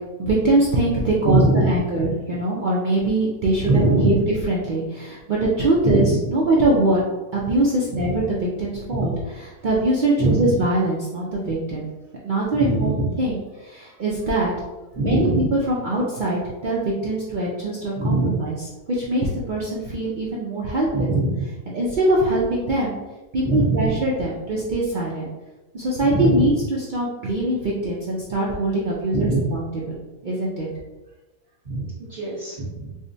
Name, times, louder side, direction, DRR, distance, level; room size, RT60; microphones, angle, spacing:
voice 1, 0.2-4.1 4.5-6.0 6.3-7.0 7.3-9.1 9.6-11.9 12.2-12.9 13.2-14.5 15.0-18.5 18.9-21.1 21.7-23.0 23.3-25.3 25.7-26.5 26.9-30.7, right 1 dB, 80° right, -5 dB, 0.4 m, -22 dB
voice 2, 1.2-2.1 3.6-4.2 5.8-6.2 7.9-8.2 8.9-9.1 10.2-10.6 12.5-13.1 14.9-15.5 17.9-18.4 20.9-21.4 23.4-24.0 26.0-26.6 29.1-29.6 31.6-32.9, right 2 dB, 45° right, -11 dB, 1.3 m, -22 dB
4.7 x 2.1 x 2.6 m, 1.1 s
omnidirectional pair, 1.5 m